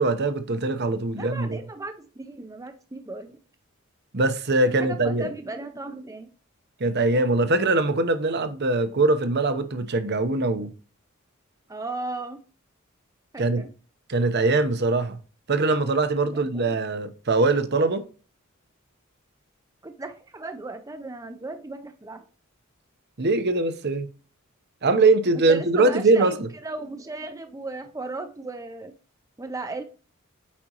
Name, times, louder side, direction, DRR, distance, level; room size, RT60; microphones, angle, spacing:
voice 1, 0.0-1.6 4.1-5.3 6.8-10.7 13.4-13.6 14.1-15.2 15.5-18.0 23.2-24.1 24.8-26.5, right 3 dB, 50° right, 0.9 m, -22 dB
voice 2, 1.1-3.4 4.7-6.3 11.7-12.4 13.3-13.7 16.0-16.7 19.8-22.2 25.5-28.9 29.4-29.8, right 2 dB, 15° right, 0.5 m, -36 dB
8.5 x 5.1 x 2.9 m
head